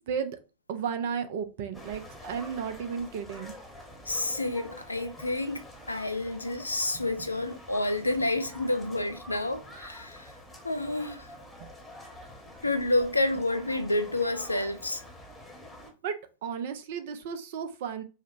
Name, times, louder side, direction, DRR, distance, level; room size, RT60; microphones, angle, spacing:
voice 1, 0.1-0.4 0.7-3.5 11.6-11.7 16.0-16.2 16.4-18.0, right 7 dB, 55° right, 0.5 m, -33 dB
sound 1, 1.7-15.9, left 1 dB, ahead, 1.0 m, -47 dB
voice 2, 4.1-10.3 10.6-11.3 12.6-15.0, left 2 dB, 85° left, 0.4 m, -29 dB
4.9 x 2.1 x 2.5 m
figure-of-eight pair, 90°, 0 cm